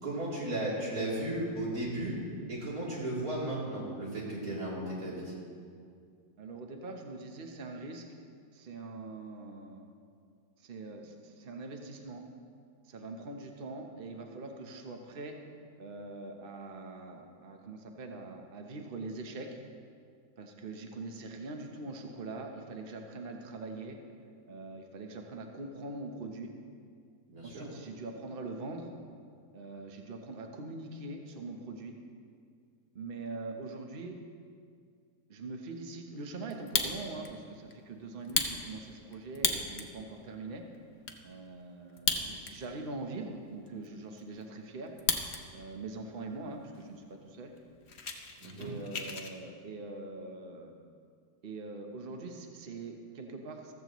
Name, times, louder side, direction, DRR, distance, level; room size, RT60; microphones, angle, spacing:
voice 1, 0.0-2.2 2.5-5.3 27.3-27.7 48.4-48.7, right 1 dB, 60° right, -7 dB, 3.8 m, -35 dB
voice 2, 6.4-8.0 8.5-9.9 10.6-12.2 12.8-15.4 15.8-19.6 20.4-24.0 24.5-26.5 27.4-28.9 29.5-32.0 32.9-34.2 35.3-40.6 41.2-44.9 45.5-47.5 48.6-50.7 51.4-53.7, right 3 dB, 40° right, 3 dB, 1.1 m, -43 dB
Fire, 36.5-37.3 37.7-37.8 38.2-39.9 40.4-40.5 40.7-41.2 41.9-42.7 43.0-43.1 43.7-45.4 45.7-46.2 46.8-46.9 47.1-47.3 47.6-49.3, left 5 dB, 45° left, 1.0 m, -33 dB
14.5 x 14.5 x 3.1 m, 2.2 s
omnidirectional pair, 1.8 m